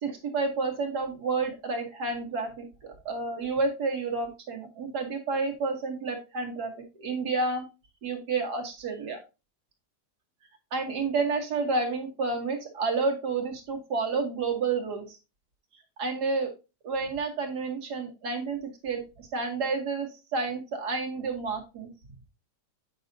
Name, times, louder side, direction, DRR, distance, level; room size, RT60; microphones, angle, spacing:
voice 1, 0.0-6.7 7.0-7.6 8.0-9.2 10.7-15.2 16.0-16.5 16.8-21.9, right 4 dB, 70° right, 3 dB, 1.8 m, -30 dB
8.5 x 5.5 x 2.6 m, 0.28 s
omnidirectional pair, 1.8 m